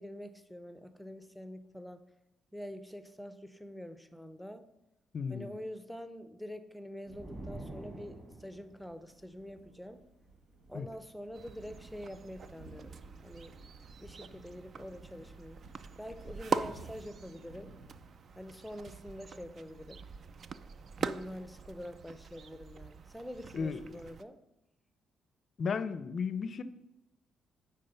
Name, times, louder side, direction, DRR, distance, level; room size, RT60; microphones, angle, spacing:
voice 1, 0.0-2.0 2.5-4.6 5.3-10.0 10.7-13.0 13.2-13.6 14.0-15.6 16.0-17.7 18.3-20.0 21.0-24.4, equal, ahead, 11 dB, 0.6 m, -45 dB
voice 2, 5.1-5.5 10.7-10.9 23.5-24.0 25.6-26.6, left 5 dB, 50° left, 14 dB, 0.5 m, -34 dB
sound 1, 7.0-19.3, right 2 dB, 80° right, 1.3 m, -57 dB
sound 2, 7.1-8.7, right 2 dB, 25° right, 2.2 m, -45 dB
sound 3, 11.3-24.2, right 5 dB, 50° right, 0.4 m, -43 dB
9.2 x 3.7 x 5.7 m, 0.89 s
cardioid pair, 90°, 0 cm